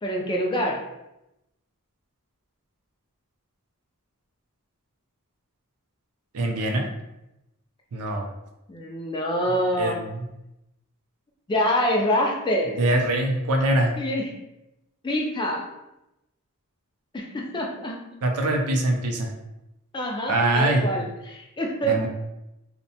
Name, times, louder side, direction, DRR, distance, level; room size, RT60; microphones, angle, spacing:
voice 1, 0.0-0.8 8.7-10.0 11.5-12.8 14.0-14.3 15.0-15.7 17.1-18.0 19.9-22.0, equal, 20° left, 0 dB, 0.3 m, -25 dB
voice 2, 6.3-6.9 7.9-8.3 9.7-10.2 12.8-13.9 18.2-19.3 20.3-20.9 21.8-22.1, right 1 dB, 90° right, 3 dB, 0.5 m, -23 dB
2.7 x 2.1 x 2.7 m, 0.90 s
head